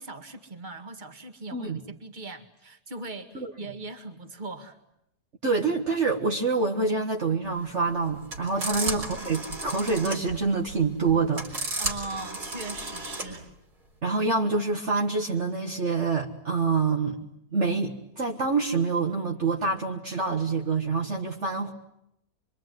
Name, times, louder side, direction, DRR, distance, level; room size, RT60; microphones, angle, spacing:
voice 1, 0.0-4.8 8.8-9.1 11.8-13.5, right 2 dB, 30° right, 7 dB, 2.1 m, -39 dB
voice 2, 5.4-11.5 14.0-17.2 17.5-21.7, right 4 dB, 50° right, 2 dB, 1.8 m, -26 dB
sound 1, 7.5-13.4, right 2 dB, 85° right, 4.6 m, -34 dB
25.0 x 25.0 x 9.3 m, 0.80 s
omnidirectional pair, 1.6 m